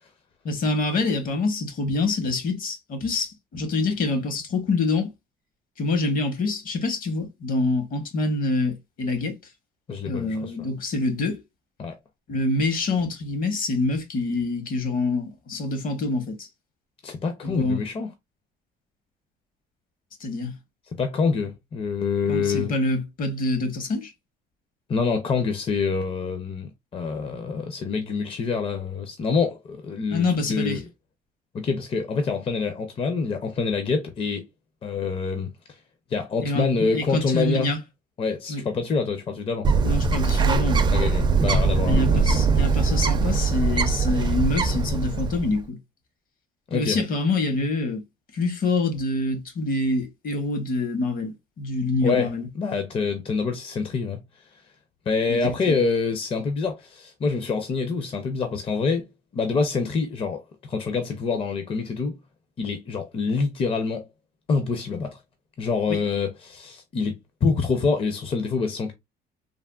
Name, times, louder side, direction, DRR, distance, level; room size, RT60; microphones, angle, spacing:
voice 1, 0.4-5.1 5.8-9.4 10.0-11.4 12.3-16.5 17.4-17.8 20.2-20.6 22.3-24.1 30.1-30.8 36.4-36.7 36.9-37.8 38.5-38.6 39.8-40.9 41.9-45.8 46.7-48.0 48.3-52.5 55.3-55.8 65.9-66.0, left 2 dB, 55° left, 1.0 m, -26 dB
voice 2, 9.9-10.5 11.8-11.9 17.0-18.1 21.0-22.7 24.9-30.8 31.5-34.5 34.8-35.8 36.1-37.7 38.2-39.7 40.9-42.2 42.6-42.7 46.7-47.0 52.0-54.2 55.1-59.1 59.3-62.2 62.6-64.1 64.5-65.2 65.6-68.9, left 4 dB, 35° left, 0.5 m, -26 dB
Bird, 39.6-45.6, right 4 dB, 25° right, 0.4 m, -21 dB
3.4 x 2.1 x 2.3 m
cardioid pair, 110°, 17 cm